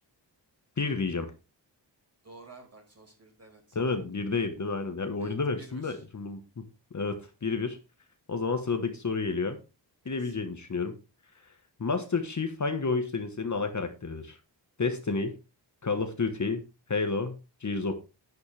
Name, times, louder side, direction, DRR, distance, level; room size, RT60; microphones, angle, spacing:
voice 1, 0.8-1.3 3.7-6.4 6.9-7.8 8.3-9.6 10.0-10.9 11.8-14.4 14.8-15.3 15.8-16.6 16.9-17.9, left 4 dB, 40° left, 7 dB, 1.4 m, -30 dB
voice 2, 2.2-3.8 5.2-6.0 10.0-10.4, right 3 dB, 35° right, 2 dB, 5.2 m, -52 dB
11.0 x 9.5 x 3.4 m, 0.29 s
wide cardioid pair, 115°, 44 cm